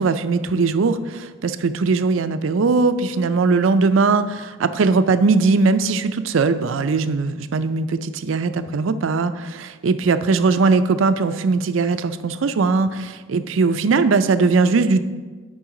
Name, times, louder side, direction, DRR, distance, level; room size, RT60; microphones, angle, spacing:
voice 1, 0.0-15.0, right 4 dB, 85° right, 11 dB, 0.4 m, -19 dB
10.0 x 5.4 x 3.8 m, 1.4 s
head